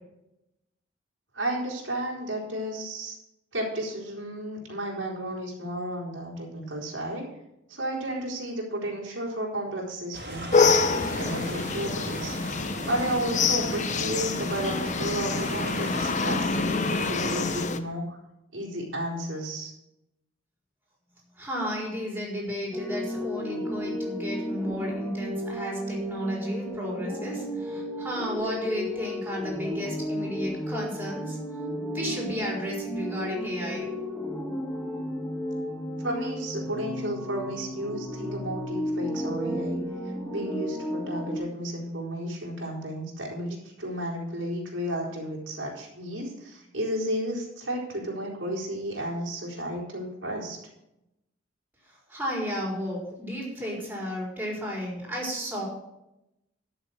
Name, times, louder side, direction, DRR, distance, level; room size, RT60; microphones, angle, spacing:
voice 1, 1.3-3.2 3.5-7.2 7.7-12.4 12.8-18.2 18.5-19.7 36.0-39.8 40.3-50.6, right 1 dB, 85° right, -3 dB, 4.0 m, -33 dB
sound 1, 10.1-17.7, right 1 dB, 60° right, 3.3 m, -38 dB
sound 2, 10.5-17.8, left 4 dB, 40° left, 0.7 m, -26 dB
voice 2, 21.4-31.4 31.9-34.0 51.9-55.7, equal, 10° right, -3 dB, 4.5 m, -33 dB
sound 3, 22.7-41.4, equal, 5° left, 1.6 m, -33 dB
12.5 x 7.0 x 6.3 m, 0.87 s
head